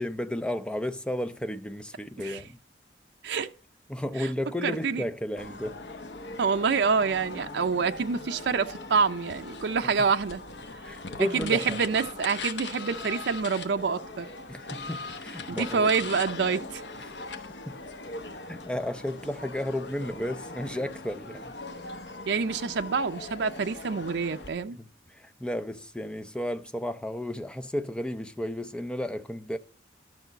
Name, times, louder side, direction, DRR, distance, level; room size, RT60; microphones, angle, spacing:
voice 1, 0.0-2.6 3.9-5.8 9.8-9.9 10.8-11.8 14.5-15.9 17.0-17.2 17.7-17.8 18.5-21.5 24.8-29.6, left 1 dB, 5° left, 0.5 m, -33 dB
voice 2, 4.6-5.0 6.4-10.4 11.2-14.3 15.6-16.8 22.3-24.8, right 5 dB, 75° right, 0.5 m, -27 dB
sound 1, 5.4-24.5, left 3 dB, 75° left, 1.0 m, -40 dB
11.5 x 6.0 x 3.9 m
head